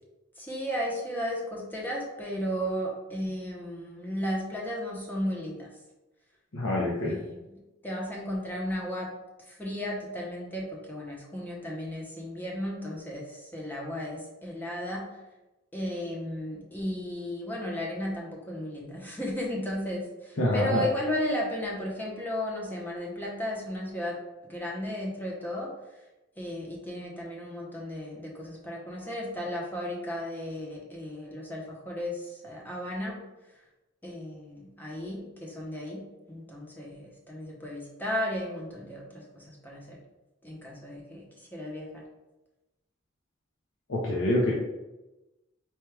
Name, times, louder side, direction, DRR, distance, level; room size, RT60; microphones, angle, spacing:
voice 1, 0.4-5.7 7.0-7.6 7.8-9.1 9.5-15.0 15.7-24.2 24.5-25.7 26.4-33.2 34.0-36.0 36.3-40.0 40.4-42.0, equal, 10° left, -3 dB, 0.7 m, -34 dB
voice 2, 6.5-7.1 20.4-20.8 43.9-44.5, left 1 dB, 85° left, -5 dB, 0.7 m, -26 dB
4.5 x 2.3 x 3.3 m, 1.0 s
head